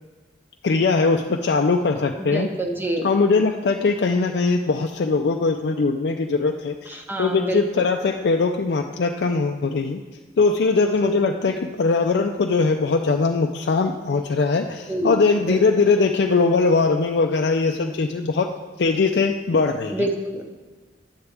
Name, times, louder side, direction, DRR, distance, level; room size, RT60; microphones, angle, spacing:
voice 1, 0.6-2.5 3.0-10.0 10.4-18.5 18.8-20.1, left 4 dB, 65° left, 3 dB, 0.4 m, -21 dB
voice 2, 2.2-3.1 6.9-7.8 11.0-11.1 14.9-15.6 19.9-20.4, right 1 dB, 10° right, 3 dB, 0.8 m, -27 dB
9.8 x 8.2 x 3.4 m, 1.3 s
head